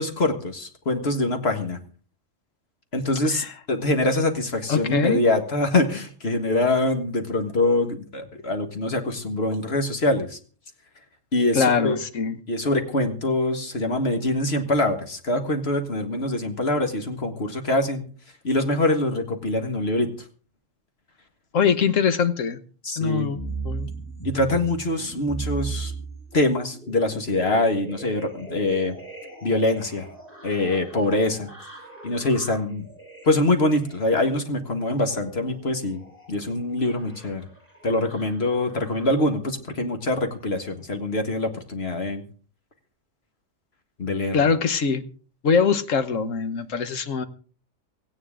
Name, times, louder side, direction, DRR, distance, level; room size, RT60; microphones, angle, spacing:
voice 1, 0.0-1.8 2.9-10.4 11.3-12.0 12.5-18.1 18.4-20.1 22.8-23.3 24.2-25.9 26.3-29.0 29.4-30.1 30.4-31.5 32.0-32.9 33.2-36.0 36.3-37.5 37.8-42.2 44.0-44.4, left 2 dB, 55° left, 1.9 m, -24 dB
voice 2, 4.7-5.2 11.5-12.4 21.5-22.6 23.0-23.4 23.6-23.9 44.3-45.0 45.4-47.3, left 6 dB, 85° left, 1.5 m, -22 dB
sound 1, 23.3-39.3 39.9-40.6 41.0-41.2, right 3 dB, 10° left, 6.6 m, -39 dB
17.0 x 16.0 x 3.7 m
omnidirectional pair, 1.3 m